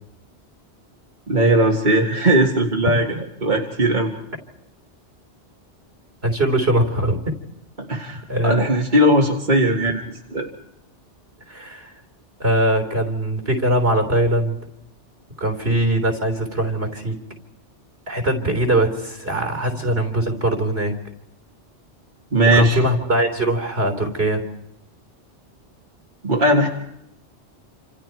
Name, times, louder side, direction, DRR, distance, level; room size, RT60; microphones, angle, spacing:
voice 1, 1.3-3.2 3.4-4.1 7.8-10.0 10.3-10.5 22.3-22.8 26.2-26.7, right 1 dB, 45° right, 0 dB, 2.2 m, -18 dB
voice 2, 6.2-7.2 8.3-8.7 11.5-11.9 12.4-14.6 15.4-17.2 18.1-21.0 22.5-24.4, right 1 dB, 60° right, 6 dB, 3.8 m, -21 dB
28.5 x 27.5 x 4.6 m, 0.82 s
omnidirectional pair, 1.2 m